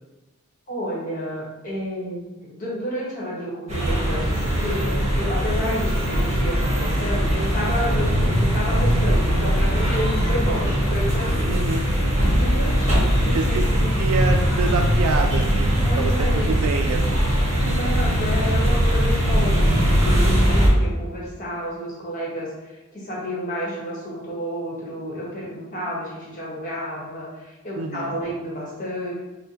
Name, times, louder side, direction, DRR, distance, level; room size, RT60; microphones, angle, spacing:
voice 1, 0.7-11.6 12.3-14.0 15.8-16.6 17.6-29.1, equal, 40° left, -5 dB, 1.2 m, -31 dB
sound 1, 3.7-20.7, equal, 30° right, 1.1 m, -20 dB
voice 2, 11.5-12.0 13.3-17.4 27.8-28.2, right 4 dB, 85° right, 4 dB, 0.3 m, -27 dB
5.5 x 2.2 x 2.7 m, 1.1 s
head